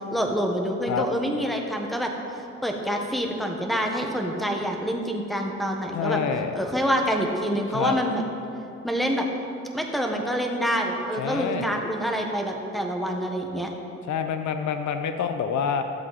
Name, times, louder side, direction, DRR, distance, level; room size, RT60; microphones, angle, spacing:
voice 1, 0.1-2.1 2.6-6.2 6.5-8.2 8.8-9.3 9.7-13.7, equal, ahead, 2 dB, 1.3 m, -26 dB
voice 2, 5.9-6.5 7.7-8.0 11.2-11.7 14.1-15.8, left 7 dB, 70° left, 8 dB, 0.8 m, -27 dB
15.0 x 7.7 x 4.1 m, 2.8 s
cardioid pair, 90°, 30 cm